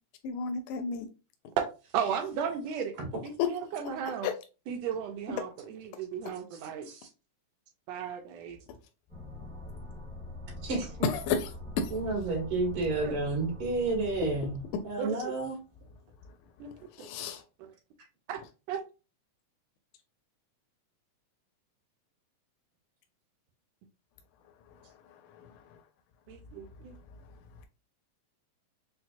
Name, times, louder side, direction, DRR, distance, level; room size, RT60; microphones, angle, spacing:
voice 1, 0.2-1.1 3.4-3.5 4.2-4.3 11.0-11.5 11.8-11.9 17.0-17.4 25.3-25.5, left 6 dB, 85° left, 5 dB, 2.1 m, -30 dB
voice 2, 1.9-2.9 3.2-4.3 4.7-6.9 7.9-8.6 13.0-13.2 15.0-15.3 16.6-16.7 17.0-17.1 17.6-17.7 18.3-18.4 18.7-18.8 26.3-26.9, right 7 dB, 85° right, 4 dB, 1.5 m, -35 dB
voice 3, 6.5-7.1 10.6-11.1 11.9-15.5, right 3 dB, 50° right, -4 dB, 2.1 m, -31 dB
sound 1, 9.1-15.6, left 1 dB, 5° left, 0.7 m, -44 dB
5.7 x 2.2 x 2.6 m, 0.31 s
omnidirectional pair, 3.5 m